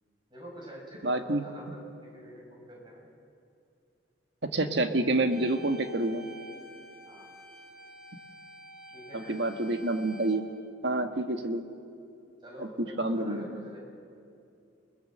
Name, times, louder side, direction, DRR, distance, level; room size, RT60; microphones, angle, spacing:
voice 1, 0.3-3.1 7.0-7.3 8.9-9.4 12.4-13.8, equal, 25° right, -2 dB, 6.6 m, -46 dB
voice 2, 1.0-1.4 4.5-6.2 9.1-10.5 10.8-11.6 12.6-12.7 13.0-13.4, right 2 dB, 70° right, 7 dB, 1.6 m, -28 dB
sound 1, 5.3-10.4, right 1 dB, 5° right, 4.4 m, -48 dB
28.5 x 20.0 x 7.7 m, 2.6 s
head